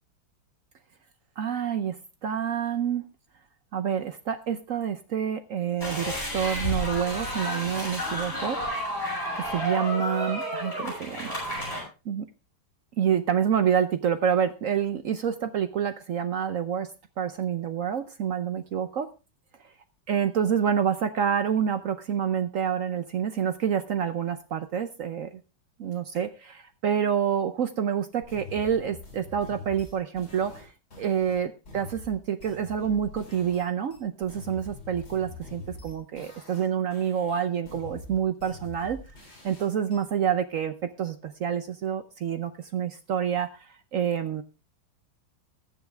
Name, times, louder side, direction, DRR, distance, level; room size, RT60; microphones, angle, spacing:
voice 1, 1.4-3.0 3.7-8.6 9.4-11.3 12.1-12.3 13.0-16.9 17.2-19.1 20.1-25.4 25.8-30.7 31.0-39.0 39.4-44.4, right 8 dB, 70° right, 11 dB, 0.8 m, -28 dB
sound 1, 5.8-11.8, equal, 30° left, 7.1 m, -31 dB
sound 2, 28.2-33.7 33.9-36.7 36.9-40.0, left 2 dB, 50° left, 5.4 m, -44 dB
20.5 x 7.3 x 3.4 m, 0.30 s
omnidirectional pair, 2.2 m